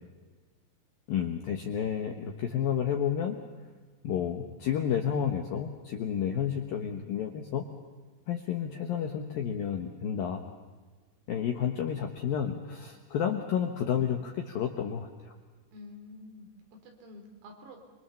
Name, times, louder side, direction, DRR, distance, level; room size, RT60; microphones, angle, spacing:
voice 1, 1.1-3.4 4.0-7.6 8.3-10.4 11.3-15.3, left 8 dB, 75° left, 3 dB, 2.2 m, -31 dB
voice 2, 15.7-17.8, left 2 dB, 80° right, 3 dB, 6.5 m, -49 dB
26.5 x 23.5 x 7.1 m, 1.4 s
omnidirectional pair, 6.0 m